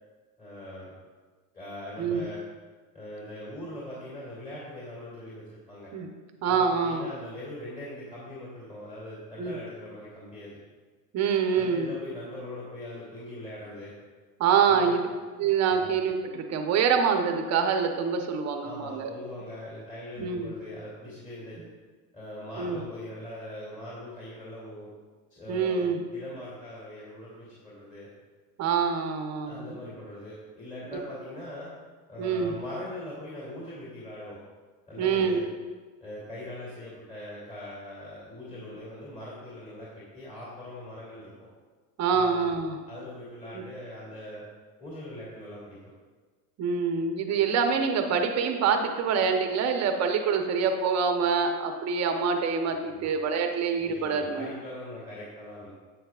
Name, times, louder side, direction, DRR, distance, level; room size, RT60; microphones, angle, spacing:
voice 1, 0.4-0.9 1.5-2.4 2.9-5.9 6.5-10.6 11.4-13.9 14.7-15.0 15.7-15.9 18.6-21.6 22.1-24.9 25.3-28.1 29.4-31.7 32.1-34.4 34.9-35.4 36.0-41.5 42.1-42.5 42.8-44.4 44.8-45.8 52.9-53.1 53.8-55.7, left 1 dB, 15° left, -8 dB, 2.7 m, -41 dB
voice 2, 6.4-7.1 9.4-9.6 11.1-11.9 14.4-15.1 15.4-19.1 20.2-20.5 22.6-22.8 25.5-26.0 28.6-29.8 32.2-32.5 35.0-35.4 42.0-42.8 43.5-43.6 46.6-54.5, right 6 dB, 35° right, 5 dB, 1.0 m, -26 dB
10.5 x 8.4 x 2.5 m, 1.4 s
supercardioid pair, 125°, 44 cm